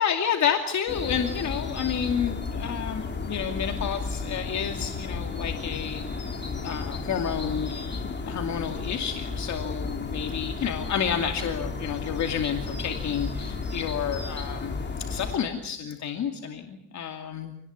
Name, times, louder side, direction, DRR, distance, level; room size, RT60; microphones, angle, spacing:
voice 1, 0.0-6.0 6.6-17.6, left 8 dB, 55° left, 4 dB, 2.6 m, -30 dB
sound 1, 0.9-15.4, left 4 dB, 30° left, 3.9 m, -33 dB
27.5 x 19.5 x 8.3 m, 0.74 s
cardioid pair, 110°, 34 cm